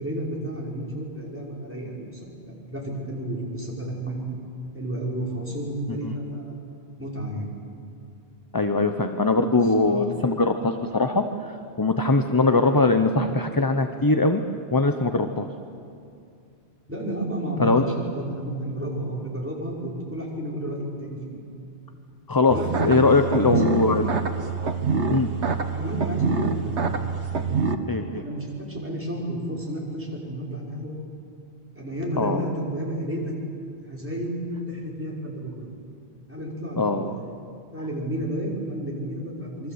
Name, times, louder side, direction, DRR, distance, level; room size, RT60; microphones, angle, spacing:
voice 1, 0.0-4.2 4.7-6.5 7.0-7.5 9.5-10.1 16.9-21.4 22.5-24.0 25.7-27.0 28.2-30.9 31.7-33.3 33.8-35.7 36.3-39.7, right 1 dB, 10° right, -4 dB, 5.3 m, -32 dB
voice 2, 8.5-14.4 14.7-15.5 17.6-17.8 22.3-24.1 25.1-25.3 27.9-28.2 32.2-32.5 36.8-37.2, left 3 dB, 20° left, 7 dB, 0.8 m, -21 dB
sound 1, 22.5-27.7, right 5 dB, 85° right, 1.6 m, -26 dB
27.0 x 23.5 x 8.1 m, 2.5 s
omnidirectional pair, 1.1 m